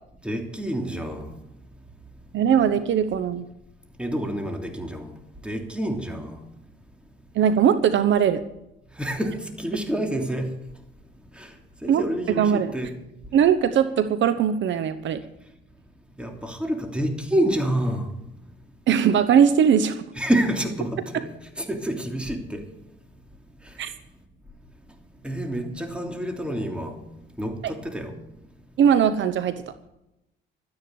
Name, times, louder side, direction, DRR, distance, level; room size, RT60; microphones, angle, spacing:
voice 1, 0.2-1.3 4.0-5.1 5.4-6.4 9.0-10.5 11.3-11.5 11.8-13.0 16.2-18.1 20.1-21.3 21.6-22.7 25.2-27.0 27.4-28.2, right 1 dB, 5° right, 3.0 m, -28 dB
voice 2, 2.3-3.5 7.3-8.4 11.9-12.0 12.4-12.7 13.3-15.2 18.9-20.0 23.8-23.9 28.8-29.6, right 8 dB, 70° right, 1.0 m, -20 dB
12.5 x 9.8 x 7.9 m
cardioid pair, 90°, 20 cm